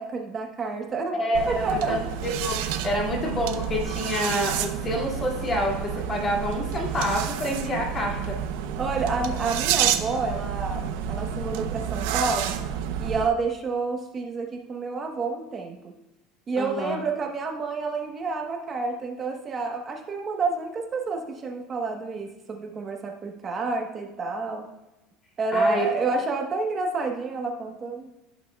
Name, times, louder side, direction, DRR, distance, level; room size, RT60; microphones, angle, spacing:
voice 1, 0.0-1.2 1.5-2.0 8.8-12.6 13.0-15.9 16.5-24.7 25.4-28.1, right 3 dB, 25° right, 3 dB, 1.0 m, -29 dB
voice 2, 1.2-8.4 16.6-17.0 25.5-25.9, left 1 dB, 25° left, -1 dB, 2.2 m, -28 dB
sound 1, 1.3-13.3, right 9 dB, 85° right, 0.6 m, -29 dB
16.0 x 6.1 x 2.3 m, 0.99 s
cardioid pair, 150°, 0 cm